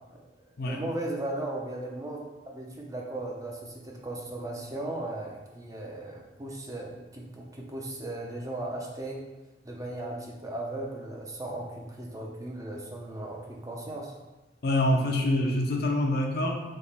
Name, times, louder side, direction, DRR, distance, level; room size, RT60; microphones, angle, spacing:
voice 1, 0.6-2.2 2.5-9.2 9.6-14.1, right 1 dB, 20° right, -1 dB, 0.6 m, -37 dB
voice 2, 14.6-16.6, left 1 dB, 55° left, 2 dB, 0.6 m, -26 dB
3.6 x 2.9 x 4.1 m, 1.1 s
head